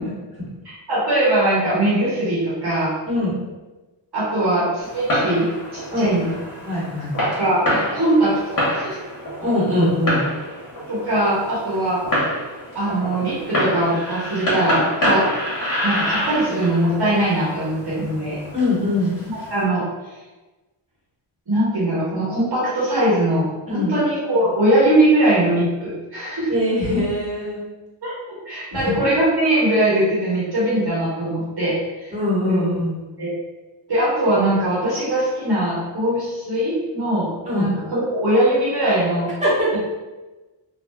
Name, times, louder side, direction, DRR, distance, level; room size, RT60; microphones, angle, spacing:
voice 1, 0.9-2.9 4.1-5.4 5.7-6.3 7.4-9.0 10.9-12.0 12.7-15.3 15.8-18.4 19.3-19.9 21.5-26.5 28.0-28.1 28.5-32.2 32.4-32.6 33.2-33.3 33.9-39.3 39.7-39.8, right 1 dB, 50° right, -8 dB, 1.2 m, -21 dB
Fireworks, 4.8-19.6, equal, 45° left, 1.2 m, -27 dB
voice 2, 5.9-6.3 6.6-7.1 9.4-10.2 18.5-19.1 23.7-23.9 26.5-27.6 28.7-28.9 32.1-33.0 37.5-37.7 39.4-39.8, left 1 dB, 15° right, -9 dB, 1.4 m, -22 dB
3.2 x 2.3 x 2.3 m, 1.2 s
wide cardioid pair, 95°, 49 cm